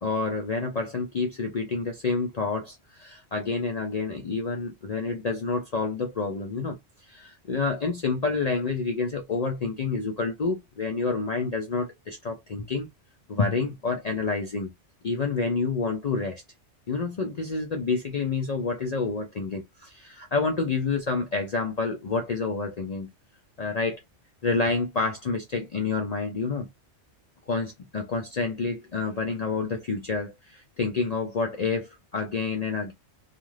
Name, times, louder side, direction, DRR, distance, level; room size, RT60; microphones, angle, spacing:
voice 1, 0.0-6.8 7.0-12.9 13.3-14.7 15.0-16.4 16.9-23.1 23.6-24.0 24.4-26.7 27.5-32.9, left 4 dB, 60° left, 0.4 m, -28 dB
2.4 x 2.4 x 3.1 m
omnidirectional pair, 1.3 m